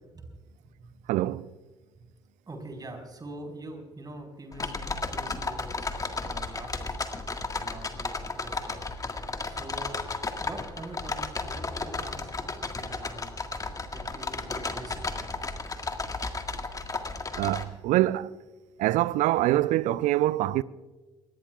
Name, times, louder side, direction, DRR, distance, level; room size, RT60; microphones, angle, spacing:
voice 1, 1.1-1.4 17.4-18.3 18.8-20.6, right 16 dB, 55° right, 0.5 m, -24 dB
voice 2, 2.5-7.0 7.6-8.8 9.4-10.0 10.4-13.3 13.9-15.2, right 2 dB, 25° right, 4.7 m, -44 dB
sound 1, 4.5-17.6, left 3 dB, 25° left, 1.8 m, -34 dB
24.5 x 19.5 x 2.4 m
figure-of-eight pair, 50°, 15 cm